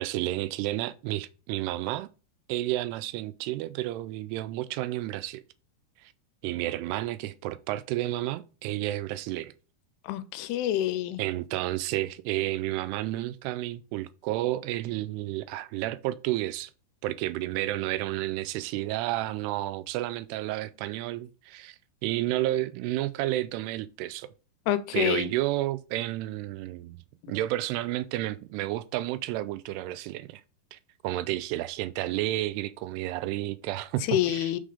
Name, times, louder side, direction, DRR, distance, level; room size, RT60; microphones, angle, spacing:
voice 1, 0.0-2.1 2.5-5.4 6.4-9.5 11.2-16.7 17.0-21.8 22.0-24.3 24.9-30.4 30.7-30.8 31.0-34.6, right 15 dB, 90° right, 2.6 m, -31 dB
voice 2, 10.1-11.2 24.7-25.3 34.1-34.6, left 12 dB, 90° left, 2.6 m, -27 dB
6.1 x 3.7 x 5.0 m
omnidirectional pair, 4.6 m